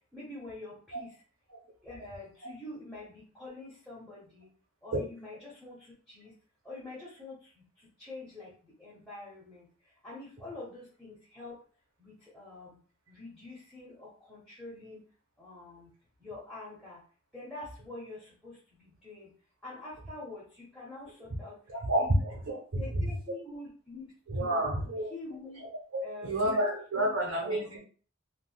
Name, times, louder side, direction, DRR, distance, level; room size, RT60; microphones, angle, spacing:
voice 1, 0.1-1.2 1.8-4.5 4.8-6.3 6.6-7.6 8.0-9.7 10.0-11.6 12.0-12.8 13.1-15.0 15.4-15.9 16.2-17.0 17.3-19.3 19.6-21.6 22.0-22.1 22.7-24.1 24.4-25.6 26.0-26.6 26.9-27.8, left 2 dB, ahead, -9 dB, 0.9 m, -46 dB
voice 2, 21.7-23.0 24.3-25.1 25.9-27.8, right 1 dB, 90° right, -4 dB, 1.0 m, -30 dB
3.7 x 2.4 x 2.3 m, 0.41 s
head